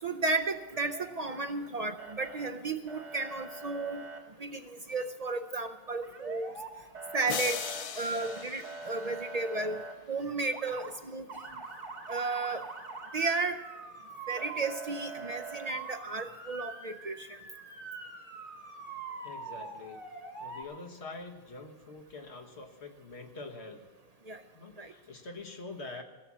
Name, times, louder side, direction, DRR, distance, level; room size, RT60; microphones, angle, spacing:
voice 1, 0.0-4.0 4.4-4.6 4.9-6.5 7.1-7.6 8.0-9.8 10.1-11.2 12.1-12.6 13.1-13.6 14.3-17.3 24.3-24.4 24.8-24.9, right 3 dB, 45° right, 8 dB, 0.6 m, -33 dB
Motor vehicle (road) / Siren, 0.7-1.7 2.0-2.5 2.9-4.2 6.0-6.7 6.9-9.9 10.4-10.9 11.3-20.6, right 4 dB, 90° right, 2.5 m, -44 dB
sound 1, 7.3-9.6, left 7 dB, 50° left, 0.4 m, -39 dB
voice 2, 19.2-20.0 20.4-23.8 24.5-26.0, left 3 dB, 80° left, 3 dB, 1.7 m, -45 dB
16.5 x 7.5 x 8.4 m, 1.3 s
omnidirectional pair, 1.1 m